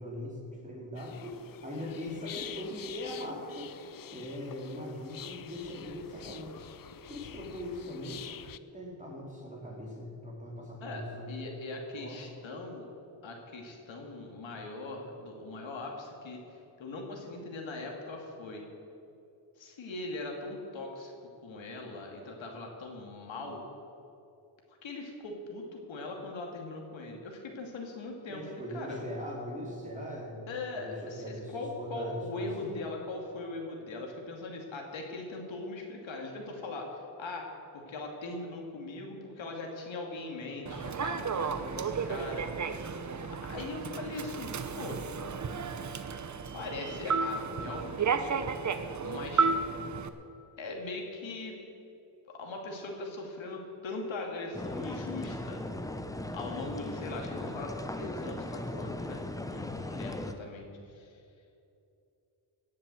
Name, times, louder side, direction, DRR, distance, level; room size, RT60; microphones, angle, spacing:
voice 1, 0.0-3.7 4.1-6.6 7.1-11.4 12.0-12.2 28.3-30.4 30.7-32.9, left 1 dB, 15° right, -3 dB, 3.8 m, -40 dB
sound 1, 0.9-8.6, left 9 dB, 45° left, 0.6 m, -47 dB
voice 2, 10.8-12.9 13.2-18.6 19.6-23.7 24.7-29.0 30.5-37.5 37.7-42.8 43.2-45.0 46.5-48.3 49.0-49.5 50.6-51.6 52.3-55.6 56.3-61.2, left 2 dB, 65° left, 1 dB, 2.7 m, -40 dB
Human voice / Subway metro underground, 40.7-50.1, right 5 dB, 35° right, 0.9 m, -33 dB
sound 2, 54.5-60.3, left 1 dB, 5° left, 0.8 m, -38 dB
17.5 x 7.5 x 7.9 m, 2.7 s
cardioid pair, 95°, 49 cm